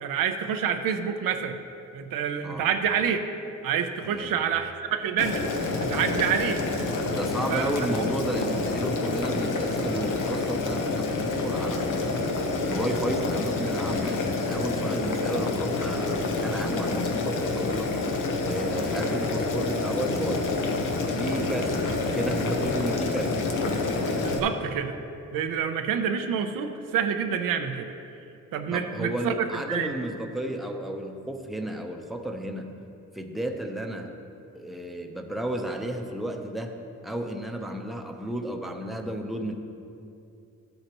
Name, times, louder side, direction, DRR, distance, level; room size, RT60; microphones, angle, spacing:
voice 1, 0.0-1.6 1.9-3.2 3.6-5.5 5.8-6.6 7.5-7.7 24.2-24.9 25.3-27.9 28.5-29.9, right 7 dB, 90° right, 6 dB, 0.7 m, -27 dB
voice 2, 4.0-4.4 7.1-12.3 12.6-17.9 18.4-20.6 21.1-23.5 28.7-32.8 33.1-34.1 34.5-39.5, right 1 dB, ahead, 3 dB, 0.7 m, -33 dB
Boiling, 5.2-24.4, left 3 dB, 70° left, 1.0 m, -28 dB
12.5 x 7.9 x 3.0 m, 2.7 s
cardioid pair, 80°, 32 cm